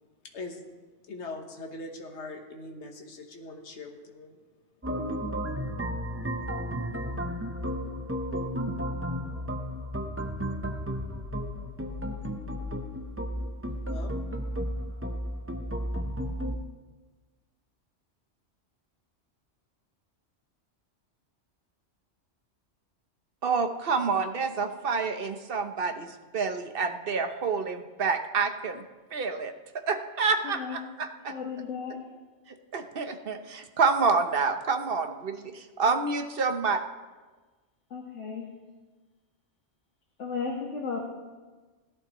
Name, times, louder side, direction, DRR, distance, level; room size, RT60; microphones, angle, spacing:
voice 1, 0.2-0.6 1.1-4.4 13.9-14.1, left 2 dB, 70° left, 3 dB, 1.5 m, -41 dB
sound 1, 4.8-16.6, equal, 15° right, 0.6 m, -33 dB
voice 2, 23.4-28.8 29.1-29.5 29.9-31.3 32.7-36.8, right 4 dB, 55° right, 7 dB, 1.0 m, -28 dB
voice 3, 30.4-30.8 31.3-32.0 37.9-38.5 40.2-41.0, left 5 dB, 85° left, -2 dB, 1.8 m, -34 dB
17.0 x 11.5 x 3.0 m, 1.3 s
omnidirectional pair, 1.2 m